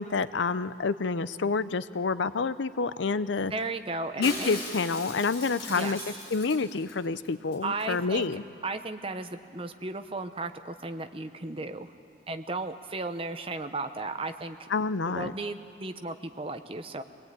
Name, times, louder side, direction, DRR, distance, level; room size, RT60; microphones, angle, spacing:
voice 1, 0.0-3.5 4.2-6.0 6.3-8.4 14.7-15.3, left 4 dB, 85° left, 15 dB, 0.6 m, -28 dB
voice 2, 3.5-4.6 5.7-6.0 7.6-8.3 8.6-11.9 12.3-14.7 15.1-17.0, right 3 dB, 30° right, 8 dB, 0.9 m, -35 dB
Shatter, 4.2-7.0 7.2-7.3 7.5-7.9 8.2-8.3, left 2 dB, 55° left, 6.9 m, -39 dB
24.0 x 19.0 x 9.0 m, 2.6 s
head